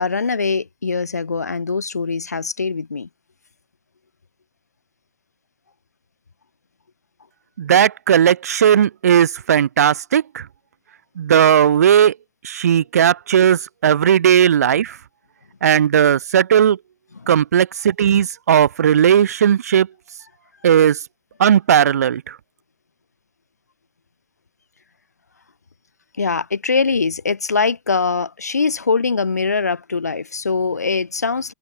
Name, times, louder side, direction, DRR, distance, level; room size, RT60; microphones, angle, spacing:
voice 1, 0.0-3.1 17.1-17.3 26.2-31.5, left 4 dB, 85° left, 1.9 m, -22 dB
voice 2, 7.6-10.4 11.2-12.1 12.4-14.9 15.6-16.8 17.3-19.9 20.6-21.0 21.4-22.2, right 9 dB, 75° right, 2.8 m, -16 dB
figure-of-eight pair, 80°, 9 cm